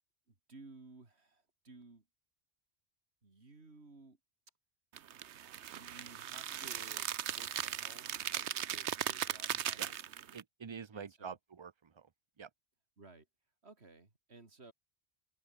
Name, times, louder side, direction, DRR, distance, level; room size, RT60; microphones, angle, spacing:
voice 1, 0.5-2.0 3.2-4.2 5.8-10.0 10.9-11.4 13.0-13.3 13.6-14.7, right 3 dB, 70° right, 3.5 m, -57 dB
sound 1, 5.0-10.4, right 10 dB, 90° right, 1.1 m, -38 dB
voice 2, 10.3-12.1 12.4-12.5, right 6 dB, 30° right, 0.6 m, -47 dB
open air
omnidirectional pair, 1.1 m